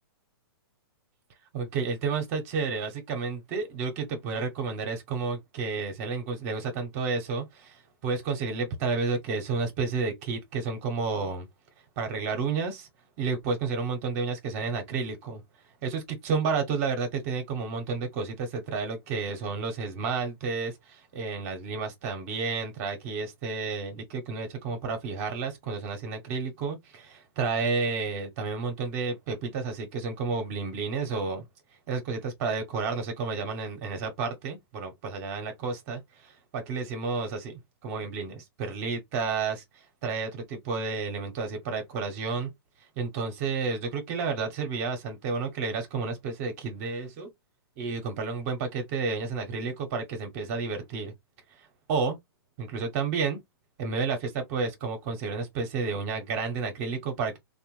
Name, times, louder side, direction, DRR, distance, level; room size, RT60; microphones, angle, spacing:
voice 1, 1.5-11.5 12.0-12.9 13.2-15.4 15.8-31.4 31.9-42.5 43.0-47.3 47.8-51.1 51.6-52.2 52.6-53.4 53.8-57.4, right 4 dB, 40° right, 0.8 m, -31 dB
3.0 x 2.2 x 3.0 m
hypercardioid pair, 145°, 13 cm